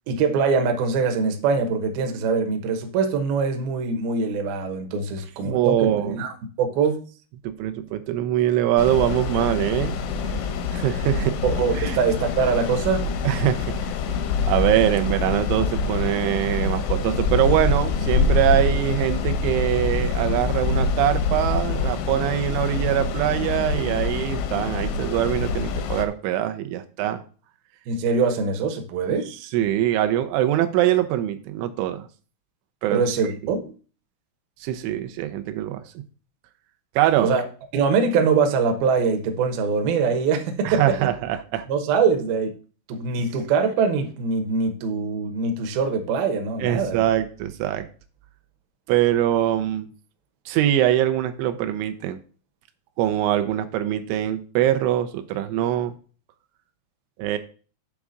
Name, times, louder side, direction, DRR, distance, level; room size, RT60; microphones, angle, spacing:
voice 1, 0.1-6.3 6.6-7.0 11.4-13.1 27.9-29.3 32.9-33.6 37.2-37.4 37.7-40.8 41.7-42.5 42.9-47.0, right 5 dB, 70° right, 6 dB, 2.4 m, -23 dB
voice 2, 5.4-6.2 7.4-10.0 10.7-11.4 11.7-12.0 13.2-13.7 14.5-27.2 29.5-32.1 32.8-33.0 34.6-35.8 37.0-37.3 40.6-41.7 46.6-47.9 48.9-49.9 50.5-52.2 53.0-55.9 57.2-57.4, right 12 dB, 85° right, 9 dB, 3.0 m, -23 dB
sound 1, 8.8-26.1, left 4 dB, 85° left, 3.5 m, -25 dB
8.3 x 3.6 x 6.4 m, 0.38 s
omnidirectional pair, 5.4 m